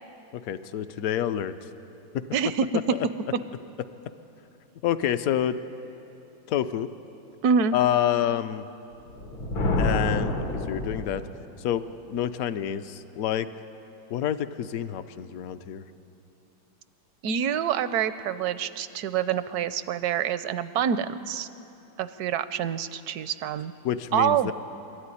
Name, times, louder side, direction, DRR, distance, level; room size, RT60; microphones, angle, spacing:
voice 1, 0.3-1.6 2.1-2.3 2.9-3.1 4.8-5.6 6.5-6.9 7.7-8.7 9.8-11.3 11.6-13.5 14.1-15.8 23.8-24.5, left 10 dB, 65° left, 11 dB, 0.9 m, -28 dB
voice 2, 2.3-2.7 7.4-7.8 17.2-21.5 22.0-23.7 24.1-24.5, right 8 dB, 70° right, 13 dB, 1.0 m, -26 dB
Thunder, 9.1-11.5, left 2 dB, 80° left, 2.6 m, -28 dB
23.0 x 13.5 x 9.8 m, 2.9 s
omnidirectional pair, 2.1 m